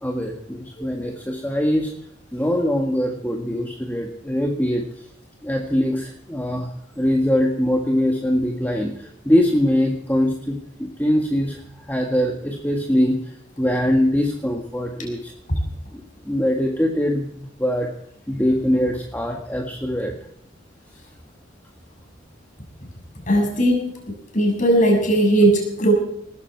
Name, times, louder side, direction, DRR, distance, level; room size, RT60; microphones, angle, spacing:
voice 1, 0.0-1.9 2.3-4.9 5.4-11.6 11.9-13.2 13.6-15.3 15.9-17.9 18.3-20.1, equal, 10° left, 2 dB, 1.7 m, -22 dB
voice 2, 23.3-23.9 24.3-25.9, right 1 dB, 40° left, 1 dB, 7.0 m, -18 dB
19.5 x 15.0 x 4.7 m, 0.70 s
head